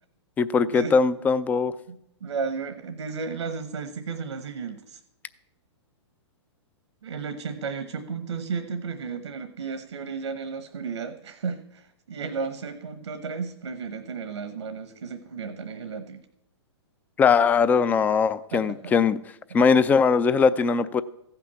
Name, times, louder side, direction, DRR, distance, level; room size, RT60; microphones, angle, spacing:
voice 1, 0.4-1.7 17.2-19.2 19.5-21.0, left 5 dB, 10° left, 16 dB, 0.3 m, -20 dB
voice 2, 1.9-5.0 7.0-16.2 18.5-18.9, right 5 dB, 85° right, 10 dB, 1.1 m, -34 dB
15.0 x 5.9 x 6.9 m, 0.81 s
hypercardioid pair, 135°, 15 cm